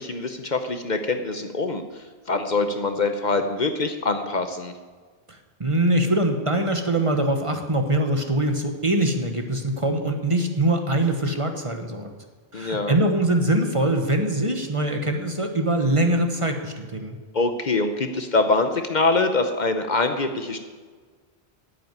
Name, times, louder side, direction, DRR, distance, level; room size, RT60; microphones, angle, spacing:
voice 1, 0.0-4.7 12.5-13.0 17.3-20.6, left 3 dB, 45° left, 7 dB, 0.9 m, -24 dB
voice 2, 5.6-12.1 12.5-17.2, right 1 dB, 30° right, 5 dB, 1.2 m, -23 dB
9.7 x 8.4 x 9.3 m, 1.5 s
omnidirectional pair, 1.1 m